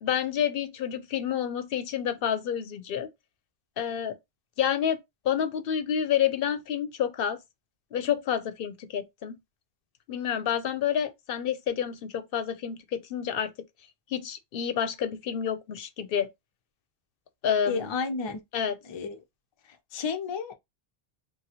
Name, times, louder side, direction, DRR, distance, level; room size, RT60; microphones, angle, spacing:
voice 1, 0.0-3.1 3.8-4.2 4.6-7.4 7.9-9.3 10.1-13.5 14.1-16.3 17.4-17.9 18.5-18.8, left 9 dB, 65° left, 0.7 m, -29 dB
voice 2, 17.7-18.4 18.8-19.2 19.9-20.5, left 5 dB, 50° left, 0.3 m, -31 dB
3.1 x 2.2 x 2.8 m
omnidirectional pair, 1.1 m